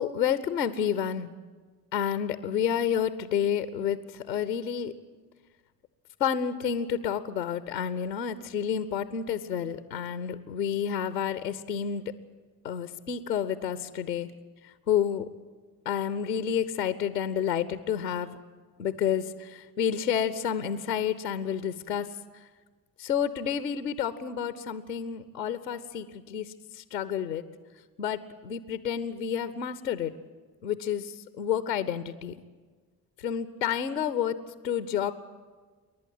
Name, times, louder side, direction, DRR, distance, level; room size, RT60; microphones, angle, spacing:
voice 1, 0.0-1.3 1.9-4.9 6.2-12.0 12.6-14.3 14.9-15.3 15.9-18.4 18.8-22.1 23.0-27.4 28.0-30.1 30.6-32.3 33.2-34.4 34.6-35.1, left 8 dB, 90° left, 14 dB, 0.6 m, -30 dB
28.5 x 11.5 x 9.6 m, 1.5 s
figure-of-eight pair, 45°, 50 cm